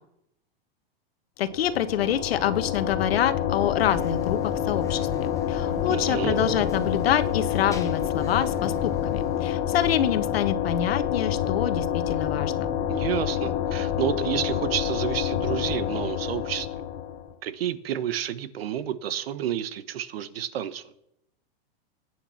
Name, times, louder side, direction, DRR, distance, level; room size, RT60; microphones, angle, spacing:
voice 1, 1.4-12.7, left 10 dB, 85° left, 11 dB, 1.4 m, -26 dB
sound 1, 1.5-17.3, left 10 dB, 30° left, 1.4 m, -28 dB
sound 2, 3.8-9.4, left 4 dB, 10° left, 1.1 m, -39 dB
sound 3, 5.5-9.1, right 5 dB, 20° right, 0.9 m, -37 dB
voice 2, 5.9-6.4 12.9-16.7 17.4-20.9, right 10 dB, 75° right, 14 dB, 1.4 m, -30 dB
21.0 x 9.3 x 5.9 m, 0.81 s
supercardioid pair, 160°, 30 cm